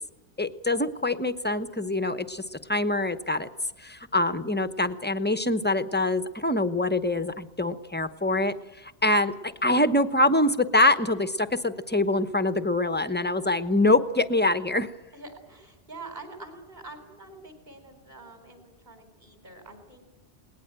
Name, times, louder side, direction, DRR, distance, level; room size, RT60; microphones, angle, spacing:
voice 1, 0.4-3.5 3.8-8.5 8.8-14.9, left 2 dB, 10° left, 11 dB, 0.9 m, -24 dB
voice 2, 15.1-20.2, right 3 dB, 45° right, 6 dB, 4.3 m, -45 dB
20.5 x 19.5 x 8.9 m, 1.0 s
omnidirectional pair, 1.1 m